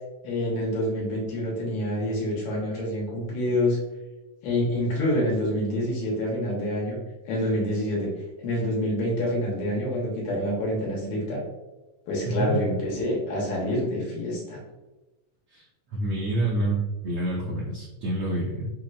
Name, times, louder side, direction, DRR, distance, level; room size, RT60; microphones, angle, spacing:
voice 1, 0.2-3.8 4.4-7.0 7.3-8.1 8.4-11.5 12.1-14.6, left 1 dB, 80° left, -3 dB, 2.4 m, -27 dB
voice 2, 15.9-18.7, right 2 dB, 80° right, -4 dB, 1.2 m, -27 dB
5.9 x 2.1 x 2.4 m, 1.1 s
omnidirectional pair, 3.4 m